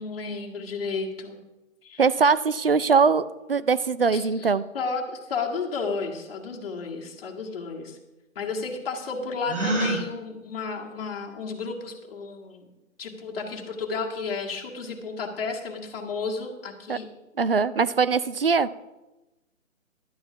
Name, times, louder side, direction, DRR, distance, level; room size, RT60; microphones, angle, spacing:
voice 1, 0.0-1.4 1.8-2.0 4.1-8.0 8.4-12.7 13.0-17.1, left 4 dB, 45° left, 0 dB, 2.1 m, -32 dB
voice 2, 2.0-4.6 16.9-17.0 17.4-18.7, right 5 dB, 45° right, 16 dB, 0.4 m, -22 dB
Gasp, 9.5-10.0, right 2 dB, 85° right, 3.8 m, -25 dB
12.0 x 7.8 x 5.7 m, 1.0 s
figure-of-eight pair, 155°, 41 cm